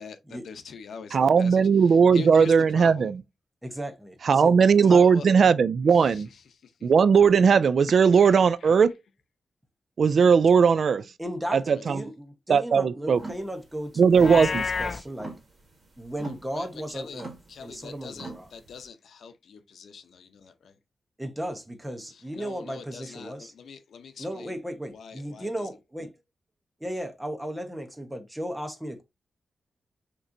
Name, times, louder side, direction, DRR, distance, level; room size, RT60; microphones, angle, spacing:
voice 1, 0.0-1.7 2.1-3.1 4.8-5.3 5.9-6.2 6.6-6.9 8.2-8.7 11.7-12.1 16.2-17.2 17.5-20.8 22.1-24.6 24.9-25.7, left 6 dB, 85° left, 0.7 m, -43 dB
voice 2, 1.1-3.2 4.2-6.3 6.8-8.9 10.0-11.1 11.5-12.1 12.5-13.2 14.0-14.7, right 6 dB, 55° right, 0.3 m, -18 dB
voice 3, 3.6-4.6 4.9-5.0 11.2-11.6 11.9-15.4 16.0-17.3 17.6-18.5 21.2-23.5 24.2-26.1 26.8-29.0, equal, 5° right, 0.9 m, -35 dB
sound 1, 13.1-18.9, right 3 dB, 35° right, 1.6 m, -43 dB
Livestock farm animals working animals, 14.1-15.0, left 5 dB, 40° left, 0.3 m, -29 dB
6.4 x 3.0 x 2.6 m
wide cardioid pair, 160°, 0 cm